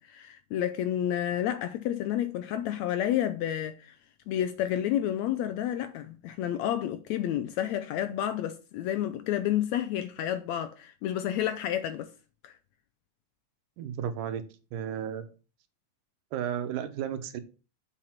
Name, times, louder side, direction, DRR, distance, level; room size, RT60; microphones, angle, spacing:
voice 1, 0.0-4.0 4.3-12.1 12.4-12.5, left 11 dB, 80° left, 1.6 m, -30 dB
voice 2, 13.8-14.4 14.7-15.3 16.3-17.4, right 9 dB, 85° right, 2.5 m, -33 dB
7.4 x 5.3 x 5.8 m
omnidirectional pair, 3.7 m